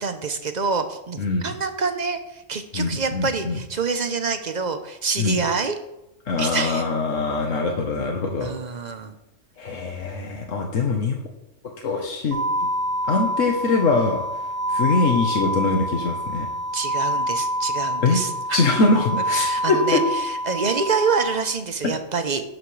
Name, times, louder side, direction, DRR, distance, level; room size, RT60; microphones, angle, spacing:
voice 1, 0.0-5.7 6.4-6.8 8.4-9.1 16.7-18.6 19.3-22.4, right 5 dB, 40° right, 8 dB, 0.9 m, -26 dB
voice 2, 1.2-1.5 2.7-3.6 5.2-5.4 6.3-8.5 9.6-11.2 11.8-12.4 13.1-14.2 14.7-16.5 18.0-18.2 18.5-20.0, left 3 dB, 85° left, 2 dB, 1.5 m, -23 dB
sound 1, 12.3-21.3, equal, 85° right, 1.7 m, -26 dB
11.5 x 9.5 x 3.3 m, 0.88 s
omnidirectional pair, 1.3 m